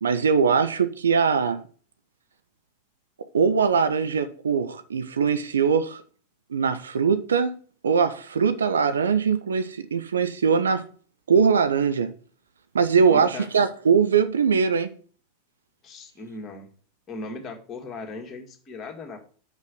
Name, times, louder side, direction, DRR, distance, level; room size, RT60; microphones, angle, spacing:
voice 1, 0.0-1.6 3.3-6.0 6.5-7.6 7.8-10.8 11.3-12.1 12.7-14.9, right 6 dB, 70° right, 0.6 m, -21 dB
voice 2, 13.0-13.5 15.8-16.7 17.1-19.2, left 3 dB, 25° left, 2.0 m, -38 dB
6.4 x 5.4 x 6.5 m
figure-of-eight pair, 90°, 0 cm